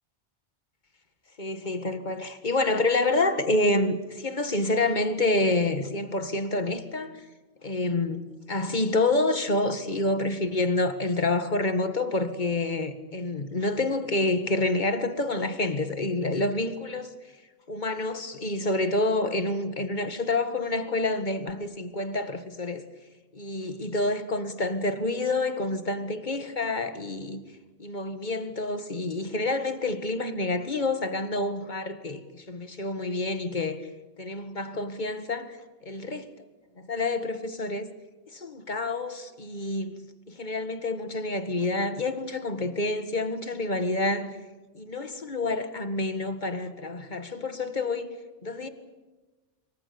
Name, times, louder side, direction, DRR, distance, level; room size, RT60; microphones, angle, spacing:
voice 1, 1.4-7.2 7.6-17.1 17.7-22.8 23.3-27.4 27.8-33.8 34.2-35.6 35.9-36.2 36.9-37.9 38.3-44.3 44.7-48.1 48.4-48.7, left 2 dB, 40° left, 2.0 m, -28 dB
26.0 x 24.5 x 7.1 m
omnidirectional pair, 1.2 m